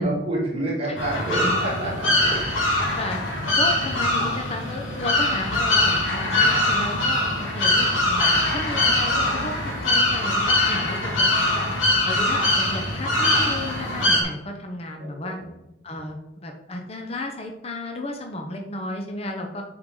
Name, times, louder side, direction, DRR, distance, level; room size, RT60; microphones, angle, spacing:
voice 1, 0.0-2.3 15.0-15.5, right 1 dB, 30° right, -6 dB, 2.1 m, -28 dB
sound 1, 1.0-14.2, left 1 dB, 80° left, 1.9 m, -22 dB
voice 2, 2.2-3.2 3.6-7.2 7.5-11.3 12.0-15.4 15.8-19.6, left 2 dB, 30° left, 3 dB, 0.8 m, -33 dB
9.8 x 4.8 x 3.8 m, 0.91 s
head